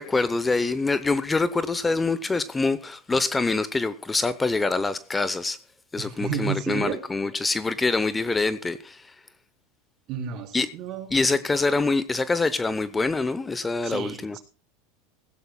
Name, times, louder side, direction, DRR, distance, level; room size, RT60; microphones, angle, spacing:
voice 1, 0.0-5.6 5.9-9.1 10.5-10.7 11.1-14.4, left 3 dB, 15° left, 0.8 m, -25 dB
voice 2, 6.0-7.0 10.1-11.2 13.8-14.4, right 8 dB, 55° right, 3.8 m, -32 dB
17.5 x 16.0 x 2.3 m
hypercardioid pair, 95°, 0 cm